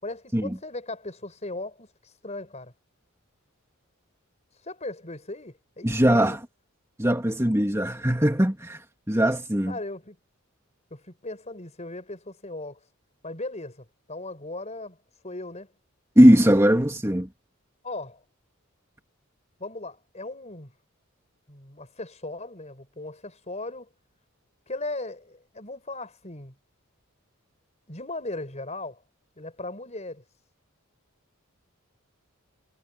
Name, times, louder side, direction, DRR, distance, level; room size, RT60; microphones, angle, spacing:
voice 1, 0.0-2.7 4.6-6.4 9.7-10.2 10.9-12.8 13.2-15.0 15.2-15.7 17.8-18.2 19.6-20.7 21.5-23.9 24.7-26.6 27.9-29.0 29.4-30.2, left 2 dB, 30° left, 5.5 m, -37 dB
voice 2, 5.8-6.4 7.0-8.8 9.1-9.7 16.2-17.3, equal, 15° right, 2.4 m, -20 dB
head